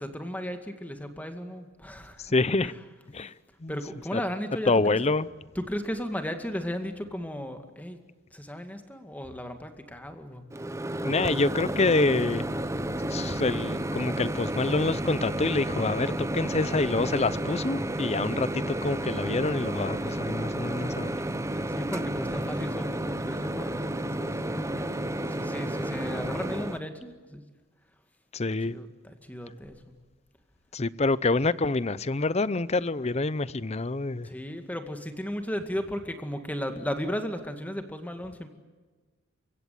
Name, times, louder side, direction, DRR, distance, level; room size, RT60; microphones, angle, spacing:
voice 1, 0.0-2.4 2.6-2.7 3.7-5.0 5.6-8.0 8.3-10.4 21.7-24.4 24.7-27.4 28.7-29.9 34.2-38.5, equal, 10° left, 2.1 m, -35 dB
voice 2, 2.2-2.7 3.1-3.3 3.6-3.7 4.1-4.2 4.7-5.3 11.0-12.5 13.1-21.2 24.6-24.7 28.3-28.8 30.7-34.3, left 3 dB, 30° left, 0.7 m, -27 dB
Microwave oven, 10.5-26.8, right 1 dB, 15° right, 0.8 m, -31 dB
29.5 x 16.5 x 9.4 m
head